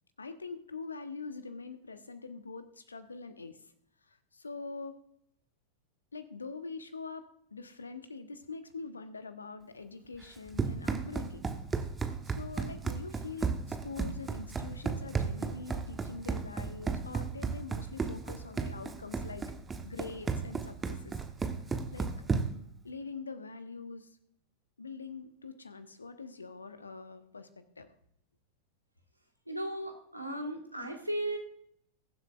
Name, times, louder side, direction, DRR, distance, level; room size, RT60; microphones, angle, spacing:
voice 1, 0.2-3.7 4.1-5.0 6.1-11.4 11.7-11.9 12.3-19.5 19.8-21.1 21.9-22.3 22.8-24.2 24.8-27.5 27.8-27.9, left 4 dB, 75° left, 10 dB, 1.1 m, -44 dB
Run, 10.2-22.7, right 5 dB, 15° right, 1.0 m, -34 dB
voice 2, 29.5-31.4, right 1 dB, 90° right, 3 dB, 1.8 m, -36 dB
21.5 x 7.6 x 2.5 m, 0.70 s
figure-of-eight pair, 90°, 0 cm